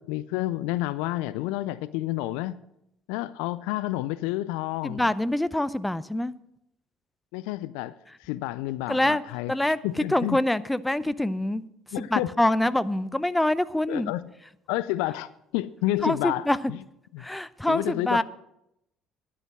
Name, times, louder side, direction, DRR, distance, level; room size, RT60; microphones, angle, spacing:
voice 1, 0.0-2.6 3.1-5.1 7.3-9.5 9.8-10.4 11.0-11.1 11.9-12.3 13.9-14.2 14.7-16.8 17.1-17.3 17.7-18.2, left 16 dB, 65° left, 18 dB, 0.3 m, -30 dB
voice 2, 4.8-6.3 8.9-9.2 9.5-9.8 10.1-11.6 12.0-14.1 16.0-16.6 17.2-18.2, left 1 dB, 10° left, 17 dB, 0.6 m, -25 dB
11.0 x 9.7 x 6.1 m, 0.83 s
figure-of-eight pair, 55°, 0 cm